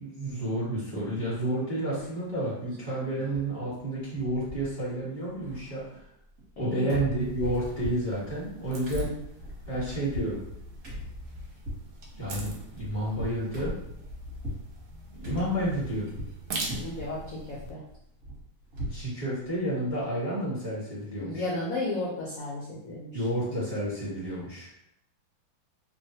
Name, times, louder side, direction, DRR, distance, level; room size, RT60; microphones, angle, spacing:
voice 1, 0.0-6.0 6.6-9.1 9.7-10.4 12.1-13.7 15.2-16.1 18.9-21.4 23.1-24.7, right 1 dB, 20° right, -10 dB, 0.6 m, -30 dB
sound 1, 2.0-2.3 2.7-3.5 3.8-3.9 4.1-5.0 5.3-6.6 6.9-14.7 15.2-16.4 16.7-17.1 17.5-19.1 19.4-19.5 19.9-20.0, left 1 dB, 50° right, 1.2 m, -39 dB
voice 2, 6.6-7.0 16.8-17.8 21.2-23.3, left 2 dB, 75° left, -5 dB, 0.8 m, -34 dB
sound 2, 7.2-17.7, right 2 dB, 75° right, 0.9 m, -42 dB
3.2 x 2.1 x 2.7 m, 0.78 s
omnidirectional pair, 2.2 m